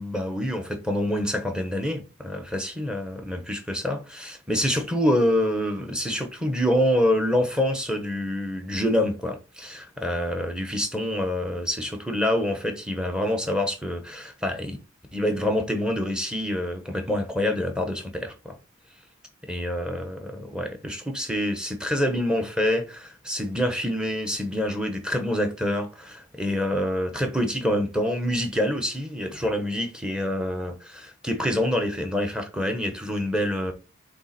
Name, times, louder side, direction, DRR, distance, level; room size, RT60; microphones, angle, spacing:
voice 1, 0.0-14.8 15.1-18.6 19.5-33.7, left 1 dB, 5° right, 1.0 m, -26 dB
7.0 x 3.3 x 4.2 m
head